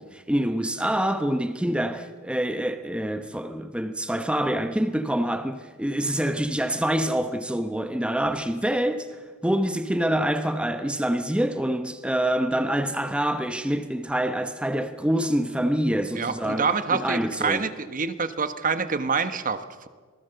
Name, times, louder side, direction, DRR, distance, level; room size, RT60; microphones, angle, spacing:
voice 1, 0.0-17.7, right 1 dB, 5° right, 0.9 m, -26 dB
voice 2, 16.2-19.9, right 5 dB, 40° right, 1.2 m, -26 dB
26.5 x 19.5 x 6.9 m
head